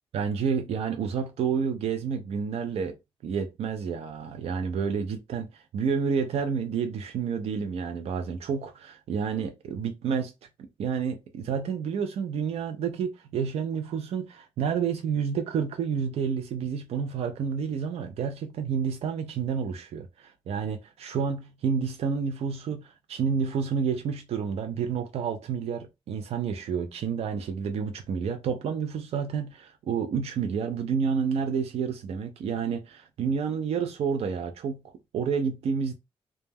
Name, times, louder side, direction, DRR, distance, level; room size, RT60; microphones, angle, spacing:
voice 1, 0.1-3.0 3.2-10.3 10.6-34.8 35.1-35.9, right 6 dB, 80° right, 0.4 m, -29 dB
2.1 x 2.1 x 3.3 m
wide cardioid pair, 130°, 10 cm